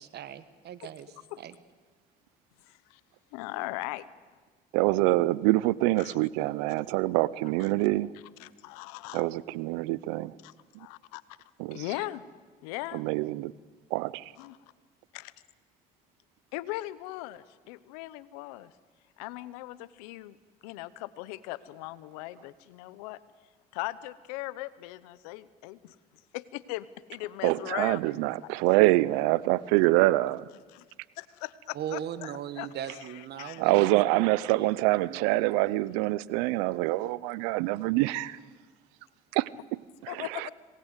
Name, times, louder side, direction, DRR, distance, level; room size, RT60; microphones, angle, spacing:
voice 1, 0.0-1.5 31.7-34.3 34.6-35.8, right 10 dB, 60° right, 1.5 m, -39 dB
voice 2, 2.7-3.0 3.3-4.1 6.0-6.1 8.4-9.2 10.4-10.5 10.8-11.2 11.7-12.2 12.6-13.0 14.4-14.6 15.1-15.3 16.5-18.7 19.2-20.4 20.6-23.2 23.7-25.9 26.3-28.2 28.4-28.5 30.7-30.9 31.2-33.6 40.1-40.5, left 18 dB, 90° left, 0.9 m, -39 dB
voice 3, 4.7-8.1 9.1-10.3 11.6-11.8 12.9-13.5 13.9-14.3 27.4-30.5 33.6-38.4 39.3-39.5 40.0-40.5, right 19 dB, 85° right, 0.6 m, -25 dB
26.5 x 19.5 x 8.2 m
supercardioid pair, 75°, 19 cm